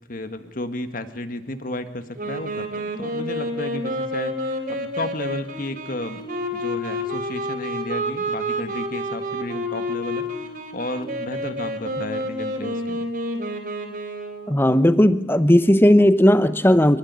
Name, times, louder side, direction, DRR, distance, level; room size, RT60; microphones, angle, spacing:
voice 1, 0.1-13.0, left 1 dB, 45° left, 9 dB, 1.8 m, -33 dB
Wind instrument woodwind instrument, 2.2-14.6, equal, 45° right, 4.0 m, -29 dB
voice 2, 14.5-17.0, equal, 10° left, 12 dB, 0.9 m, -16 dB
24.0 x 22.0 x 9.7 m, 0.99 s
head